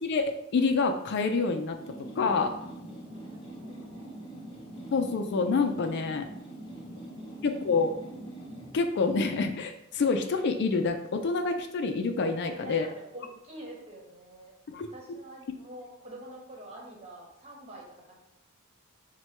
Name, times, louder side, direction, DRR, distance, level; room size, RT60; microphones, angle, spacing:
voice 1, 0.0-1.8 2.2-2.5 4.9-6.2 7.4-7.9 8.7-12.9 14.7-15.2, left 4 dB, 55° left, 6 dB, 0.4 m, -27 dB
sound 1, 1.8-8.8, right 1 dB, 25° left, 1.1 m, -43 dB
voice 2, 3.1-4.3 6.7-7.4 12.3-18.2, right 1 dB, 30° right, -3 dB, 1.2 m, -47 dB
4.4 x 2.2 x 4.4 m, 0.84 s
head